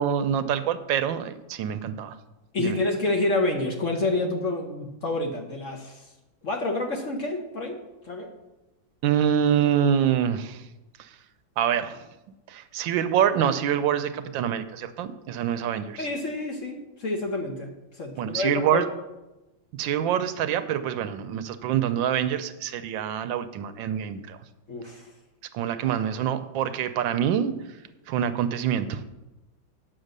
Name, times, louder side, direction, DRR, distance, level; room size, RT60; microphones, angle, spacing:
voice 1, 0.0-2.2 2.6-2.8 9.0-10.7 11.0-11.2 11.6-12.1 12.5-16.1 18.2-18.9 19.7-24.4 25.5-27.5 28.1-29.0, right 9 dB, 80° right, 11 dB, 1.3 m, -26 dB
voice 2, 2.5-6.1 6.4-8.3 16.0-18.9 24.7-25.1, left 2 dB, 45° left, 2 dB, 1.2 m, -28 dB
8.9 x 6.2 x 6.6 m, 1.0 s
omnidirectional pair, 2.1 m